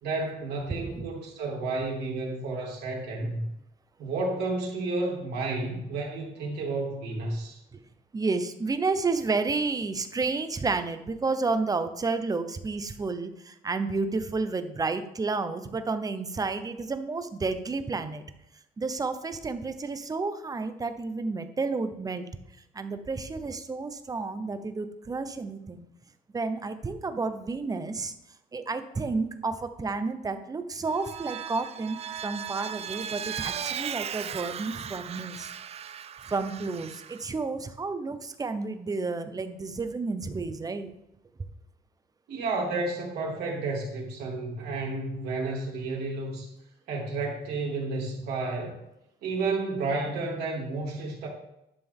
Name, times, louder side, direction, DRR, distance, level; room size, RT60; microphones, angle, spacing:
voice 1, 0.0-3.4 4.0-7.6 42.3-46.5 46.9-48.8 49.2-51.3, right 3 dB, 75° right, -2 dB, 3.2 m, -31 dB
voice 2, 0.8-1.1 7.7-7.8 8.1-18.2 18.8-22.3 22.7-25.8 26.3-28.1 28.5-35.5 36.3-40.9, right 3 dB, 20° right, 9 dB, 0.9 m, -31 dB
Vehicle, 30.9-37.3, right 8 dB, 40° right, 0.5 m, -37 dB
11.0 x 6.8 x 3.6 m, 0.83 s
cardioid pair, 110°, 17 cm